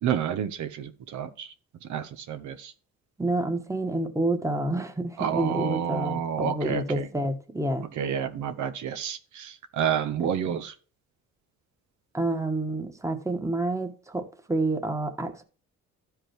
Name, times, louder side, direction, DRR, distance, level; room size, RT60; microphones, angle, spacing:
voice 1, 0.0-1.5 1.9-2.7 5.2-7.1 8.0-10.7, right 8 dB, 75° right, 0.9 m, -29 dB
voice 2, 3.2-7.9 10.2-10.5 12.1-15.4, right 2 dB, 10° right, 1.3 m, -29 dB
13.0 x 5.0 x 3.0 m
cardioid pair, 90°, 30 cm